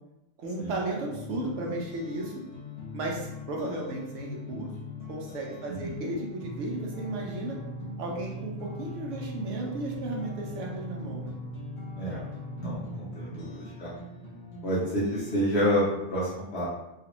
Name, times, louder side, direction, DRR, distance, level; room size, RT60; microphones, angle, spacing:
voice 1, 0.4-2.3 2.9-4.7 5.1-7.6 8.0-11.3, right 2 dB, 85° right, -1 dB, 1.1 m, -34 dB
sound 1, 0.9-15.7, left 2 dB, 80° left, 1.4 m, -41 dB
voice 2, 12.6-13.9 14.6-16.7, equal, 65° left, -8 dB, 1.1 m, -28 dB
3.2 x 2.4 x 2.9 m, 0.92 s
omnidirectional pair, 1.2 m